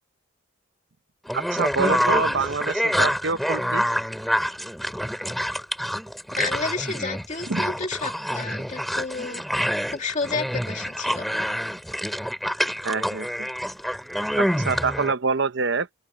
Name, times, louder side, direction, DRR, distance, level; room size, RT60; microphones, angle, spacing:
sound 1, 1.3-15.1, equal, ahead, 3.0 m, -27 dB
voice 1, 1.3-3.8 7.5-7.6 12.8-13.5 14.4-15.9, right 4 dB, 55° right, 0.8 m, -26 dB
voice 2, 6.4-9.4 9.9-11.2, left 4 dB, 35° left, 2.7 m, -31 dB
open air
head